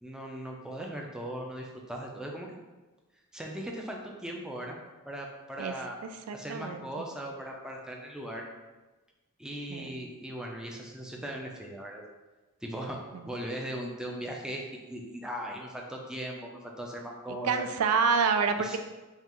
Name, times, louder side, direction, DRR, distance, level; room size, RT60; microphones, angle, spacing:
voice 1, 0.0-2.6 3.3-4.8 5.1-6.0 6.3-8.5 9.4-12.1 12.6-17.7 18.6-18.8, right 1 dB, 5° right, -1 dB, 0.4 m, -39 dB
voice 2, 6.0-6.9 9.7-10.0 13.1-13.2 17.4-18.8, right 5 dB, 80° right, 7 dB, 0.3 m, -28 dB
5.5 x 2.4 x 3.0 m, 1.2 s
head